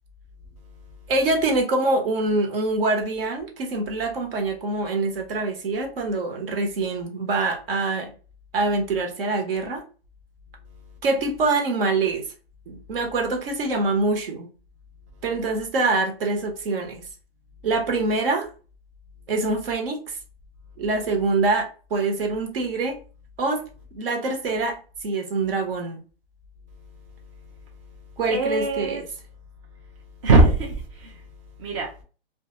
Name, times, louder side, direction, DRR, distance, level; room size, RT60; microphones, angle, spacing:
voice 1, 1.1-8.1 8.5-9.8 11.0-12.2 12.7-14.5 15.2-17.1 17.6-18.5 19.3-20.2 20.8-23.0 23.4-23.6 23.9-26.0 28.2-29.1, right 3 dB, 65° right, 0.9 m, -25 dB
voice 2, 28.3-29.0 30.2-31.2 31.6-31.9, right 2 dB, 30° right, 0.4 m, -20 dB
2.3 x 2.2 x 2.8 m
hypercardioid pair, 160°, 31 cm